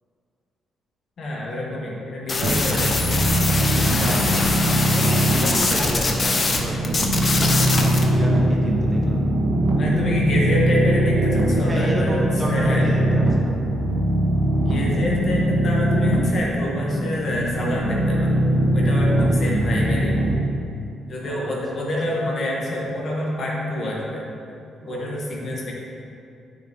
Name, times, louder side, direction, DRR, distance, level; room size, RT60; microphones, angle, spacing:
voice 1, 1.2-2.9 9.7-12.9 14.7-18.4 18.7-20.2 21.1-24.3 24.9-25.7, left 1 dB, 55° left, -3 dB, 1.6 m, -27 dB
sound 1, 2.3-6.6 6.8-8.0, left 3 dB, 35° left, 0.9 m, -23 dB
sound 2, 2.4-20.3, right 1 dB, 80° right, 1.2 m, -21 dB
voice 2, 4.9-6.8 7.2-9.2 11.5-13.5 21.2-21.5 24.8-25.0, right 1 dB, 25° right, -3 dB, 1.4 m, -31 dB
8.9 x 5.5 x 3.6 m, 2.6 s
cardioid pair, 90°, 0 cm